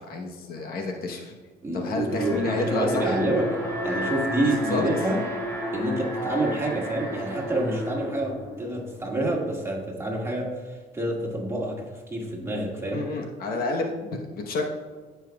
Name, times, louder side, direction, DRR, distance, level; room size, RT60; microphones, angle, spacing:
voice 1, 0.0-1.3 1.7-3.2 4.7-4.9 12.9-14.6, left 3 dB, 65° left, 2 dB, 1.1 m, -30 dB
voice 2, 1.6-3.5 3.8-5.2 5.7-13.0, right 1 dB, 15° right, -2 dB, 1.9 m, -28 dB
Alarm, 2.1-9.2, equal, 15° left, 2.2 m, -32 dB
14.0 x 5.7 x 2.3 m, 1.4 s
cardioid pair, 110°, 17 cm